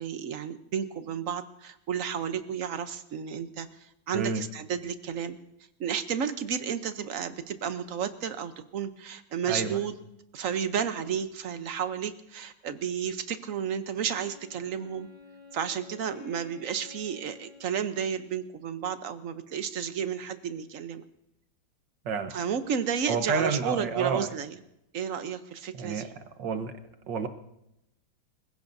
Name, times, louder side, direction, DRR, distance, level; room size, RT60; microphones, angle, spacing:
voice 1, 0.0-5.4 5.8-9.9 10.3-15.1 15.5-21.0 22.3-24.6 24.9-26.1, right 7 dB, 55° right, 10 dB, 1.1 m, -32 dB
voice 2, 9.5-9.8 22.1-22.3 23.1-24.3 25.7-26.1 26.4-26.7 27.1-27.3, right 5 dB, 70° right, 8 dB, 1.7 m, -29 dB
Wind instrument woodwind instrument, 13.9-18.7, left 3 dB, 45° left, 4.3 m, -52 dB
25.5 x 16.0 x 2.7 m, 0.83 s
omnidirectional pair, 2.1 m